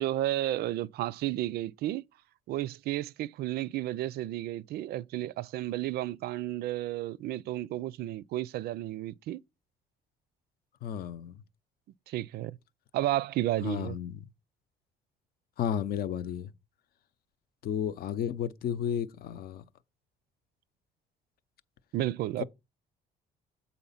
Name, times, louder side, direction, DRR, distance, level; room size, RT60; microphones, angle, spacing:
voice 1, 0.0-2.0 2.5-9.4 12.1-12.6 12.9-14.0 21.9-22.4, right 14 dB, 70° right, 0.4 m, -32 dB
voice 2, 10.8-11.4 13.6-14.2 15.6-16.5 17.6-19.6 22.4-22.5, left 9 dB, 60° left, 0.7 m, -33 dB
7.8 x 4.1 x 5.6 m
cardioid pair, 110°, 17 cm